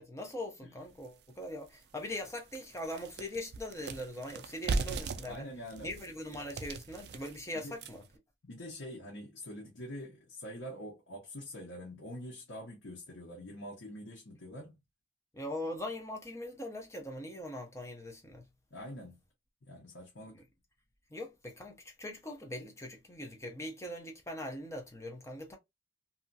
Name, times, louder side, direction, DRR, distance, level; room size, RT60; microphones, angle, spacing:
voice 1, 0.0-5.5 5.8-8.0 15.3-18.5 20.3-20.4 21.1-25.6, left 1 dB, 15° left, 0.6 m, -41 dB
sound 1, 1.0-1.1 1.6-1.7 2.1-8.2, right 3 dB, 55° right, 0.4 m, -39 dB
voice 2, 5.3-5.9 7.5-7.8 8.4-14.8 18.7-19.2 19.6-20.4, equal, 85° left, 1.0 m, -45 dB
2.7 x 2.4 x 2.6 m
head